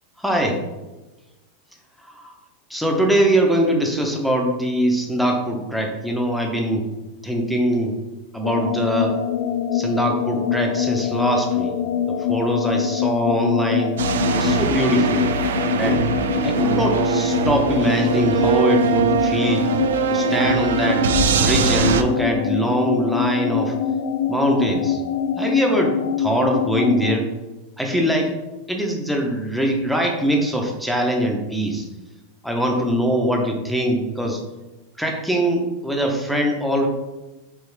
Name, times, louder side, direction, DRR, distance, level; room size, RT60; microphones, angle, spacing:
voice 1, 0.2-0.6 2.0-2.3 2.7-6.9 7.2-8.0 8.3-9.2 9.7-11.8 12.1-13.9 14.4-15.3 15.7-16.0 16.4-19.7 20.1-21.1 21.4-23.8 24.3-25.0 25.4-27.3 27.8-28.4 28.7-31.9 32.4-34.4 35.0-36.9, right 1 dB, ahead, 1 dB, 0.6 m, -22 dB
sound 1, 8.4-27.2, left 7 dB, 65° left, 0.3 m, -24 dB
sound 2, 14.0-22.0, right 6 dB, 85° right, 0.4 m, -22 dB
4.7 x 3.0 x 3.2 m, 1.1 s
supercardioid pair, 145°, 0 cm